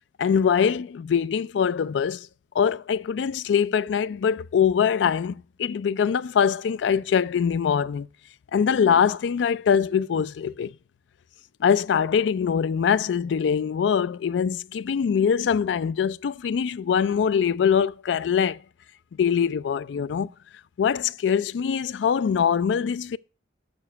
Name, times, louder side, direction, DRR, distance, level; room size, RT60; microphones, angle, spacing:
voice 1, 0.2-2.3 2.6-8.1 8.5-10.7 11.6-18.6 19.2-20.3 20.8-23.2, left 7 dB, 90° left, 0.3 m, -23 dB
7.0 x 6.0 x 5.2 m
head